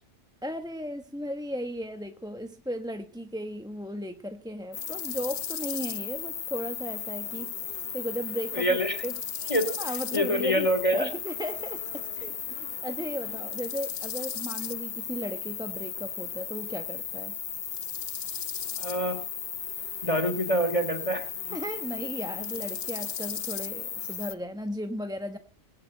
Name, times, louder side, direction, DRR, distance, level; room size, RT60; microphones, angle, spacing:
voice 1, 0.4-9.1 9.8-12.6 12.8-17.3 21.5-25.4, equal, 5° right, 7 dB, 1.2 m, -36 dB
sound 1, 4.7-24.3, left 8 dB, 55° left, 1.1 m, -35 dB
voice 2, 8.5-9.0 9.5-9.7 10.1-11.1 18.8-19.2 20.0-21.2, equal, 25° left, 7 dB, 3.4 m, -26 dB
21.5 x 9.7 x 6.6 m, 0.41 s
omnidirectional pair, 1.2 m